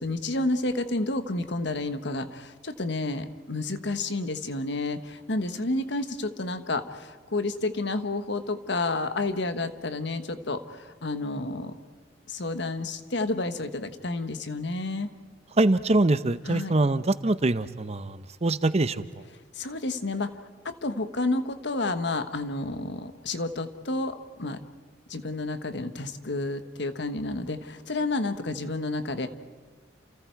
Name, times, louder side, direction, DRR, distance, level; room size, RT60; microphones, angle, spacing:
voice 1, 0.0-11.8 12.3-15.1 16.5-16.7 19.5-20.3 20.6-24.6 25.1-29.3, left 2 dB, 65° left, 9 dB, 1.4 m, -30 dB
voice 2, 15.6-19.0, right 2 dB, 35° right, 13 dB, 0.8 m, -24 dB
29.5 x 28.5 x 4.7 m, 1.4 s
head